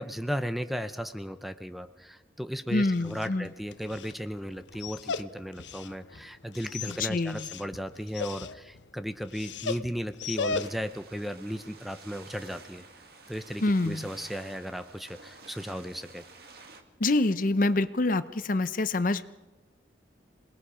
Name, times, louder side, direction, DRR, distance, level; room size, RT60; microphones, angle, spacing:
voice 1, 0.0-12.8 13.3-16.2, equal, ahead, 10 dB, 0.6 m, -35 dB
voice 2, 2.7-3.5 6.9-7.5 13.6-14.1 17.0-19.3, left 2 dB, 50° left, 13 dB, 0.7 m, -26 dB
Dog, 2.8-11.0, left 4 dB, 90° left, 0.7 m, -38 dB
sound 1, 10.6-16.8, right 4 dB, 55° right, 1.9 m, -51 dB
27.0 x 19.0 x 5.1 m, 1.1 s
head